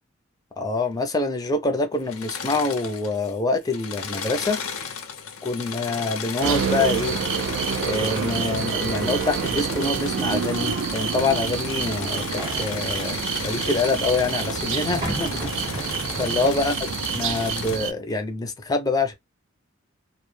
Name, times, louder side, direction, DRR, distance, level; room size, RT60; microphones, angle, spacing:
voice 1, 0.6-4.6 5.4-7.2 7.8-13.2 13.4-16.8 17.1-19.1, left 3 dB, 20° left, 0.4 m, -25 dB
Engine / Mechanisms, 2.0-3.3 3.6-17.8, left 6 dB, 90° left, 0.6 m, -34 dB
sound 1, 6.4-17.9, right 7 dB, 65° right, 0.4 m, -28 dB
sound 2, 8.5-16.5, right 1 dB, 20° right, 0.8 m, -38 dB
2.1 x 2.1 x 3.1 m
head